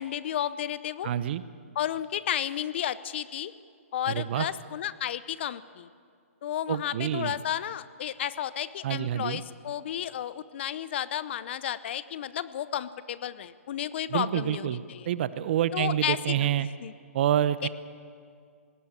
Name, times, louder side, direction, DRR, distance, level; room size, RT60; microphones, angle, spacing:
voice 1, 0.0-1.1 1.8-3.5 3.9-5.9 6.4-15.1 15.7-16.5 16.8-16.9 17.6-17.7, left 10 dB, 50° left, 16 dB, 0.7 m, -32 dB
voice 2, 1.0-1.4 4.1-4.5 6.7-7.3 8.8-9.4 14.1-16.7 17.1-17.7, right 11 dB, 50° right, 15 dB, 0.9 m, -27 dB
19.0 x 17.0 x 8.7 m, 2.2 s
hypercardioid pair, 140°, 8 cm